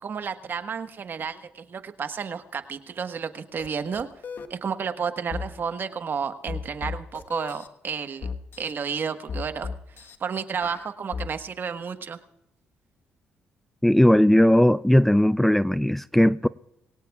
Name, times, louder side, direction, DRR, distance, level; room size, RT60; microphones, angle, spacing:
voice 1, 0.0-4.1 4.5-8.3 8.6-9.7 10.2-12.2, right 6 dB, 50° right, 1.3 m, -31 dB
sound 1, 3.6-3.7 3.9-4.5 5.3-5.5 6.5-7.7 8.2-8.7 9.3-10.2 10.6-11.3, left 5 dB, 55° left, 1.3 m, -34 dB
voice 2, 13.8-16.5, left 1 dB, 5° left, 0.4 m, -18 dB
23.5 x 17.5 x 2.4 m
supercardioid pair, 60°, 4 cm